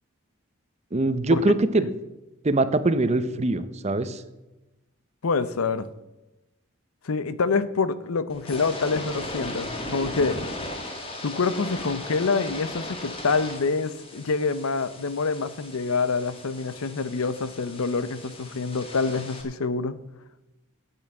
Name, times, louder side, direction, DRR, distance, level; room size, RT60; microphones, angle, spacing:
voice 1, 0.9-1.9 2.4-4.2, right 2 dB, 30° right, 0.6 m, -23 dB
voice 2, 5.2-5.9 7.0-10.4 11.2-20.0, left 4 dB, 85° left, 0.7 m, -26 dB
sound 1, 8.3-19.4, left 1 dB, 25° left, 1.7 m, -37 dB
9.1 x 8.4 x 7.6 m
head